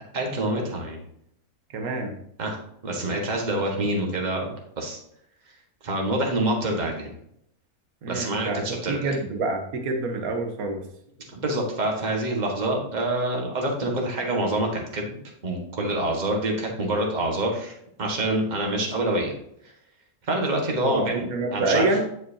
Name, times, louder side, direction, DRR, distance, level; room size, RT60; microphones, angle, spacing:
voice 1, 0.1-1.0 2.4-2.6 2.8-5.0 5.8-7.1 8.1-9.2 11.3-15.2 15.4-19.3 20.3-21.3 21.5-21.9, right 1 dB, 30° right, 1 dB, 1.6 m, -26 dB
voice 2, 1.7-2.2 8.0-10.8 20.9-22.0, right 3 dB, 70° right, 4 dB, 1.6 m, -27 dB
9.5 x 6.0 x 2.8 m, 0.72 s
omnidirectional pair, 1.6 m